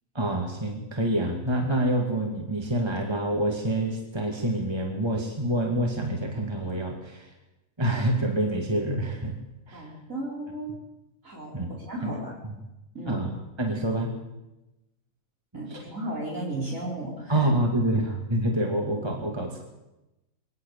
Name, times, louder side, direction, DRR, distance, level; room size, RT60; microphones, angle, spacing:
voice 1, 0.1-7.3 7.8-9.4 9.7-9.9 11.5-11.8 12.0-12.1 13.1-14.1 15.7-15.8 17.3-19.6, right 1 dB, 20° right, 1 dB, 2.5 m, -27 dB
voice 2, 9.7-10.8 11.2-11.5 11.9-12.3 12.9-13.2 15.5-17.5, right 1 dB, 65° right, -3 dB, 4.6 m, -34 dB
22.5 x 19.0 x 7.0 m, 0.96 s
omnidirectional pair, 1.5 m